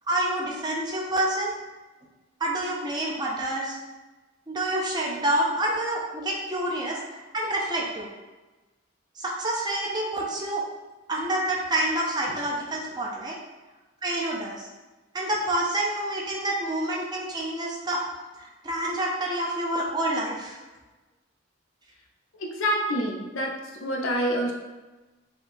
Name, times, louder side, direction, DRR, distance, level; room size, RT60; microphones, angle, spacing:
voice 1, 0.1-1.5 2.4-3.8 4.5-7.0 7.3-8.1 9.2-10.6 11.1-13.3 14.0-14.6 15.1-18.0 18.4-20.6, right 1 dB, 20° right, -2 dB, 0.4 m, -28 dB
voice 2, 22.4-23.5 23.8-24.5, equal, 90° left, 0 dB, 0.6 m, -26 dB
3.6 x 2.7 x 2.5 m, 1.2 s
head